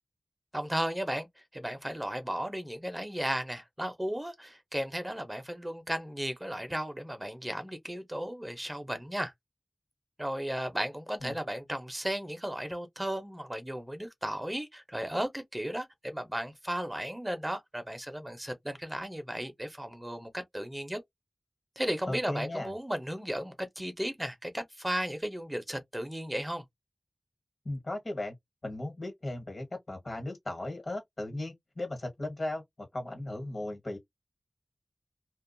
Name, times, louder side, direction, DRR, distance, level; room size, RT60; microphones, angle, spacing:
voice 1, 0.5-1.3 1.5-9.3 10.2-21.0 21.8-26.6, equal, 15° right, 0.6 m, -35 dB
voice 2, 22.1-22.7 27.6-28.4 28.6-34.0, left 1 dB, 60° left, 1.2 m, -37 dB
2.4 x 2.2 x 2.6 m
wide cardioid pair, 70°, 0 cm